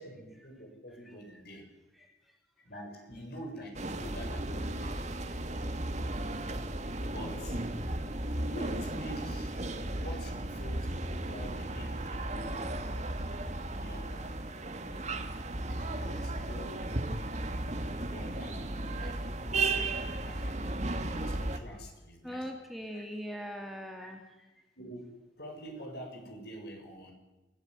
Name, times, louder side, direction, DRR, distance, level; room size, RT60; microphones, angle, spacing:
voice 1, 0.0-1.6 2.6-5.0 7.0-7.6 8.3-9.5 9.9-10.9 11.3-12.7 13.8-14.3 14.8-15.3 15.8-16.8 18.0-19.2 20.2-20.7 21.1-22.6 22.9-23.0 24.8-25.1 25.4-27.1, equal, 55° left, 2 dB, 7.3 m, -46 dB
sound 1, 3.7-21.6, right 2 dB, 35° right, 1.9 m, -35 dB
voice 2, 15.3-16.0 17.5-17.7 18.0-18.1 19.0-19.2 22.2-24.2, equal, ahead, 3 dB, 2.2 m, -43 dB
28.5 x 16.5 x 9.7 m, 1.1 s
head